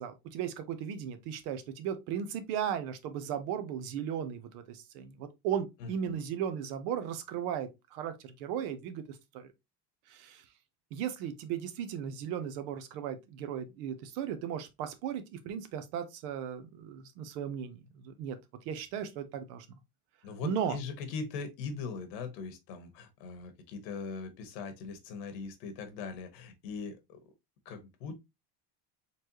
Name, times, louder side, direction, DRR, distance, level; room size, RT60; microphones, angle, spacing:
voice 1, 0.0-9.5 10.1-10.4 10.9-18.4 18.6-19.7 20.4-20.8, right 8 dB, 80° right, 1.0 m, -36 dB
voice 2, 5.8-6.2 20.2-27.2 27.6-28.1, left 5 dB, 85° left, 1.3 m, -40 dB
4.3 x 3.3 x 2.8 m
supercardioid pair, 125°, 48 cm